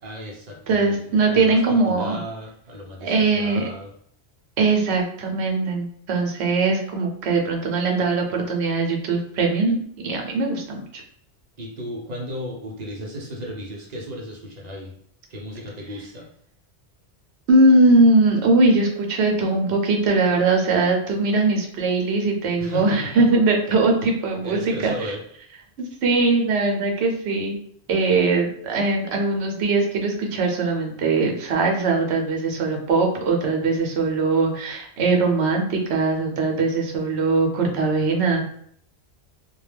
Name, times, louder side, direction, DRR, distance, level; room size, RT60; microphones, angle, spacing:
voice 1, 0.0-3.9 11.6-14.9 15.3-16.3 22.6-23.3 23.7-23.8 24.4-25.2, left 1 dB, 45° right, -1 dB, 0.7 m, -35 dB
voice 2, 0.7-2.2 3.0-3.6 4.6-9.8 10.0-11.0 17.5-24.9 25.8-27.6 27.9-38.4, right 3 dB, 75° right, 2 dB, 0.9 m, -21 dB
2.2 x 2.2 x 3.3 m, 0.65 s
omnidirectional pair, 1.1 m